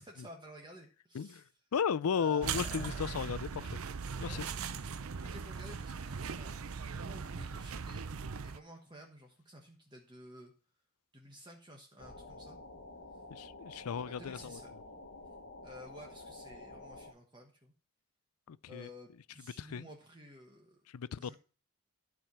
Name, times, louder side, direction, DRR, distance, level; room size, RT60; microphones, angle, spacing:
voice 1, 0.0-1.5 2.1-3.1 4.3-4.8 5.2-8.1 8.4-10.5 11.1-12.6 14.1-14.7 15.6-17.7 18.7-20.9 21.2-21.3, equal, 20° right, 1.2 m, -53 dB
voice 2, 1.7-3.8 4.2-4.5 13.3-14.6 18.5-18.9 19.6-19.9 20.9-21.3, left 7 dB, 85° left, 0.4 m, -35 dB
sound 1, 2.4-8.6, right 6 dB, 80° right, 0.6 m, -39 dB
sound 2, 12.0-17.1, left 2 dB, 55° left, 1.3 m, -50 dB
12.5 x 4.8 x 5.6 m
head